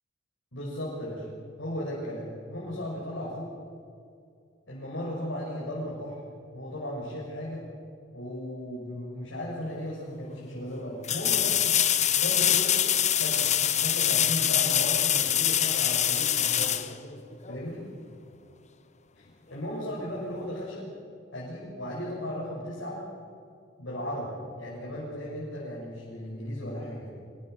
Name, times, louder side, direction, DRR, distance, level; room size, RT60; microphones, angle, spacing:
voice 1, 0.5-1.2 1.6-3.5 4.7-6.2 6.5-7.7 8.1-11.8 12.2-12.8 13.1-13.5 13.8-16.8 17.5-17.8 19.5-20.9 21.3-23.0 23.8-27.1, equal, 75° left, -6 dB, 6.5 m, -36 dB
sound 1, 9.7-9.8 11.0-17.6 20.5-20.6, left 10 dB, 40° left, 1.0 m, -24 dB
26.0 x 21.5 x 6.6 m, 2.4 s
head